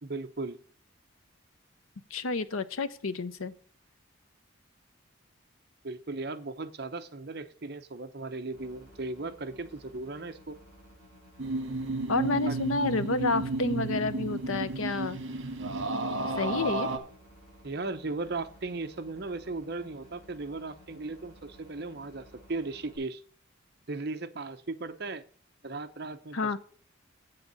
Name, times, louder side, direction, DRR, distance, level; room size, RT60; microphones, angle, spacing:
voice 1, 0.0-0.6 5.8-10.6 12.5-12.6 17.6-23.2 23.9-25.2 25.6-26.4, right 3 dB, 50° right, 9 dB, 0.8 m, -37 dB
voice 2, 2.1-3.5 12.1-15.2 16.4-16.9 26.3-26.6, left 3 dB, 90° left, 14 dB, 0.8 m, -29 dB
sound 1, 8.5-23.0, equal, 30° left, 6.4 m, -56 dB
sound 2, 11.4-17.0, right 2 dB, 65° right, 1.4 m, -32 dB
8.5 x 6.8 x 6.8 m, 0.44 s
head